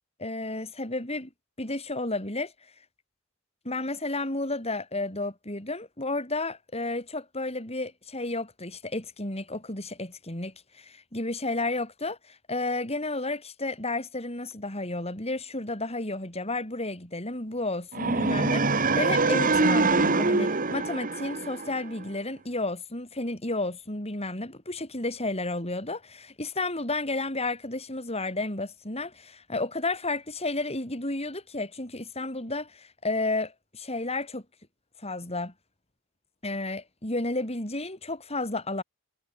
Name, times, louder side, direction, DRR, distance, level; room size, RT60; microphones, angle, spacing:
voice 1, 0.2-1.3 1.6-2.5 3.6-34.4 35.0-35.5 36.4-38.8, left 2 dB, 30° left, 7.6 m, -32 dB
sound 1, 17.9-22.0, right 3 dB, 40° right, 1.5 m, -24 dB
head